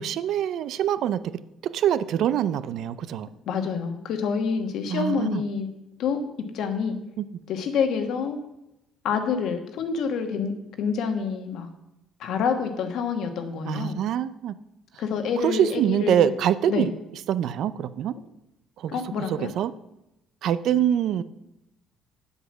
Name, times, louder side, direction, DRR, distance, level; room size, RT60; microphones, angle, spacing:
voice 1, 0.0-3.3 4.9-5.4 7.2-7.3 13.7-14.6 15.4-16.9 17.3-18.1 18.8-19.7 20.4-21.2, right 10 dB, 65° right, 15 dB, 0.5 m, -25 dB
voice 2, 3.5-5.7 6.0-6.2 6.5-7.0 7.5-8.4 9.0-10.5 10.8-11.7 12.2-14.0 15.0-16.3 16.7-16.9 18.9-19.5, left 6 dB, 65° left, 6 dB, 1.5 m, -27 dB
8.1 x 8.1 x 6.1 m, 0.89 s
cardioid pair, 135°, 0 cm